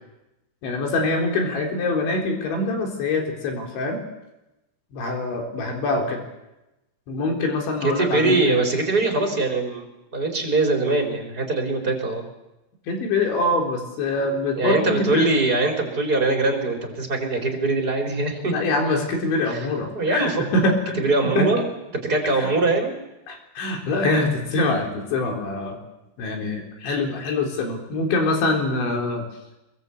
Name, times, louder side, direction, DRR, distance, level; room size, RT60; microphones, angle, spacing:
voice 1, 0.6-4.0 4.9-6.2 7.1-8.6 12.9-15.3 18.5-21.0 21.4-21.5 22.3-22.5 23.3-25.8 26.2-29.2, left 2 dB, 80° left, 2 dB, 6.2 m, -24 dB
voice 2, 7.8-9.8 10.1-12.2 14.6-18.5 19.5-19.7 19.9-20.4 21.0-21.6 21.9-22.9, right 3 dB, 20° right, 2 dB, 4.3 m, -22 dB
25.0 x 22.5 x 8.4 m, 0.99 s
omnidirectional pair, 5.2 m